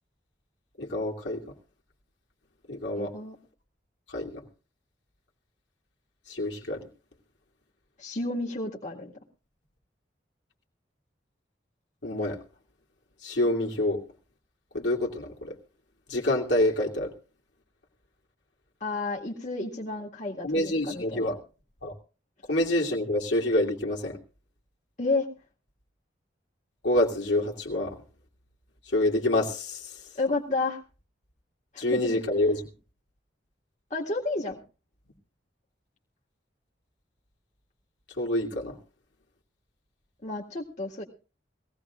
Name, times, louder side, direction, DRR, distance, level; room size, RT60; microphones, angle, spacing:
voice 1, 0.8-1.4 2.7-3.1 4.1-4.4 6.3-6.8 12.0-12.4 13.2-14.0 14.7-15.5 16.1-17.1 20.4-21.4 21.8-21.9 22.5-24.2 26.8-28.0 28.9-29.9 31.8-32.6 38.2-38.8, left 1 dB, 80° left, -1 dB, 2.6 m, -27 dB
voice 2, 3.0-3.4 8.0-9.1 18.8-21.2 25.0-25.3 30.2-30.8 31.7-32.2 33.9-34.6 40.2-41.0, left 3 dB, 40° left, -2 dB, 2.0 m, -31 dB
21.0 x 16.5 x 2.5 m, 0.35 s
head